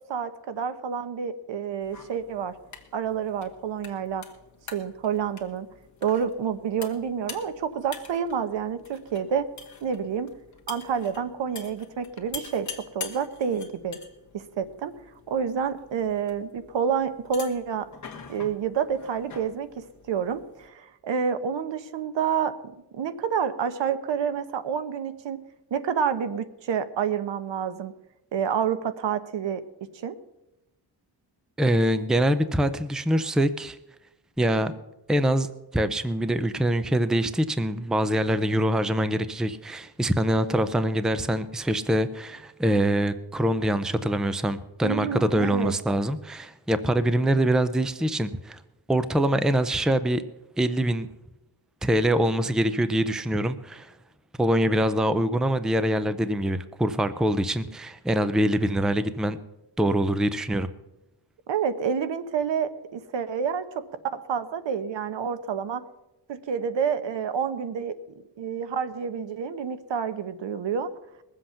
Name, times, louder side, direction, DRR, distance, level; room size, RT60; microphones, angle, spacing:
voice 1, 0.1-2.5 2.9-4.2 4.7-5.7 6.0-9.5 9.8-10.3 10.7-14.0 14.3-14.9 15.3-17.9 18.3-25.4 25.7-27.9 28.3-30.2 44.8-45.8 61.5-63.7 64.1-65.8 66.3-67.9 68.4-70.9, right 7 dB, 85° right, 1.1 m, -28 dB
sound 1, 1.8-20.7, left 6 dB, 40° left, 1.5 m, -45 dB
voice 2, 31.6-33.8 34.4-34.7 35.1-35.5 35.7-48.6 48.9-50.2 50.6-51.1 51.8-53.9 54.4-59.4 59.8-60.7, right 1 dB, ahead, 0.4 m, -24 dB
20.5 x 7.7 x 5.7 m
wide cardioid pair, 175°, 43 cm